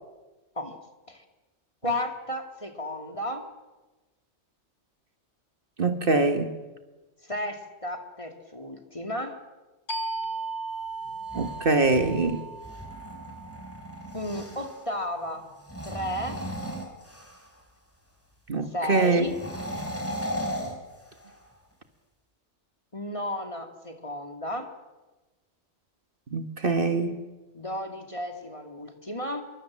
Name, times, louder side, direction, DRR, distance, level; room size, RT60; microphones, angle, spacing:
voice 1, 1.8-3.5 7.2-9.4 14.1-15.5 15.8-16.4 18.7-19.4 22.9-24.7 27.5-29.4, left 1 dB, 30° left, 4 dB, 2.7 m, -33 dB
voice 2, 5.8-6.5 11.3-12.5 18.5-19.3 26.3-27.2, right 3 dB, 50° right, 7 dB, 1.9 m, -24 dB
sound 1, 9.9-15.2, right 3 dB, 75° left, 2.7 m, -37 dB
sound 2, 11.1-14.8 15.6-17.6 19.2-21.5, equal, 10° left, 4.6 m, -37 dB
26.5 x 23.5 x 7.6 m, 1.2 s
omnidirectional pair, 1.2 m